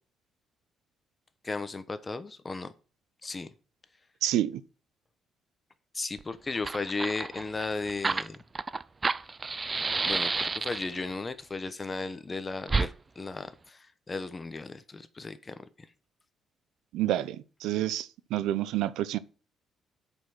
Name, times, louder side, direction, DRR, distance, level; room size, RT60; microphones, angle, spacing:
voice 1, 1.4-2.7 3.2-3.5 5.9-8.4 10.1-15.6, left 3 dB, 20° left, 0.9 m, -35 dB
voice 2, 4.2-4.6 16.9-19.2, right 13 dB, 90° right, 0.6 m, -29 dB
Fire, 6.2-6.3 6.5-11.0 12.7-12.9, right 4 dB, 20° right, 0.4 m, -30 dB
8.2 x 5.5 x 6.1 m
cardioid pair, 130°, 0 cm